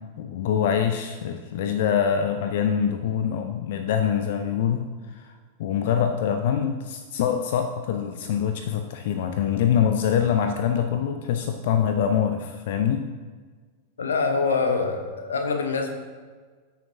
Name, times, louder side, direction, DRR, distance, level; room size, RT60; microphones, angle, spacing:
voice 1, 0.2-5.3 5.6-13.1, left 8 dB, 55° left, 7 dB, 0.5 m, -24 dB
voice 2, 14.0-15.9, left 4 dB, 70° left, 5 dB, 1.0 m, -25 dB
14.0 x 6.5 x 2.7 m, 1.5 s
figure-of-eight pair, 90°, 0 cm